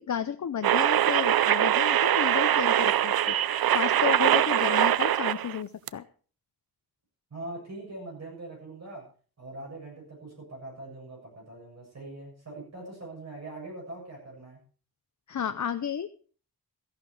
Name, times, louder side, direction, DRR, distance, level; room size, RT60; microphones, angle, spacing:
voice 1, 0.0-6.0 15.3-16.2, left 8 dB, 55° left, 8 dB, 0.7 m, -32 dB
sound 1, 0.6-5.6 5.9-6.0, right 11 dB, 75° right, 0.5 m, -23 dB
voice 2, 7.3-9.1 9.4-14.6, right 2 dB, 45° right, -2 dB, 7.6 m, -42 dB
14.5 x 11.0 x 4.8 m, 0.41 s
wide cardioid pair, 175°, 36 cm